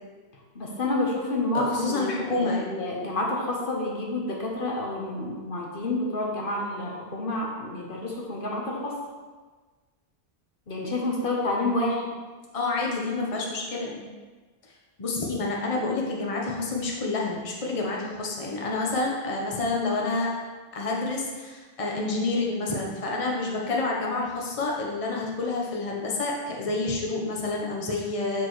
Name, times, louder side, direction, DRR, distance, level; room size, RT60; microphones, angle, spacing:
voice 1, 0.5-9.0 10.7-12.0, left 2 dB, 60° left, -2 dB, 1.2 m, -29 dB
voice 2, 1.5-2.6 12.5-14.0 15.0-20.3 20.7-28.5, left 3 dB, 35° left, -2 dB, 1.0 m, -28 dB
6.8 x 6.8 x 3.1 m, 1.4 s
omnidirectional pair, 1.0 m